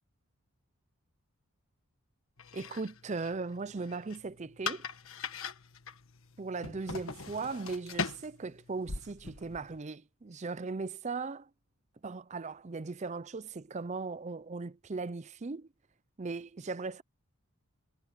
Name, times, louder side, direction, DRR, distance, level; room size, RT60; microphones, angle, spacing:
sound 1, 2.4-9.8, left 4 dB, 70° left, 1.5 m, -41 dB
voice 1, 2.5-4.9 6.4-11.5 12.0-15.7 16.2-17.0, right 4 dB, 30° right, 0.5 m, -38 dB
head